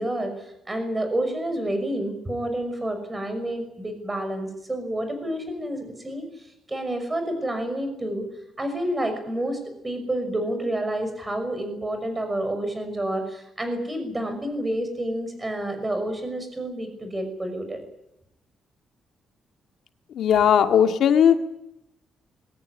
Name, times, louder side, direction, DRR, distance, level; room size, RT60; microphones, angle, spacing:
voice 1, 0.0-8.3 8.6-17.8, right 1 dB, 15° right, 7 dB, 5.9 m, -29 dB
voice 2, 20.1-21.4, left 8 dB, 65° left, 6 dB, 2.1 m, -18 dB
22.5 x 18.0 x 9.9 m, 0.82 s
cardioid pair, 155°, 0 cm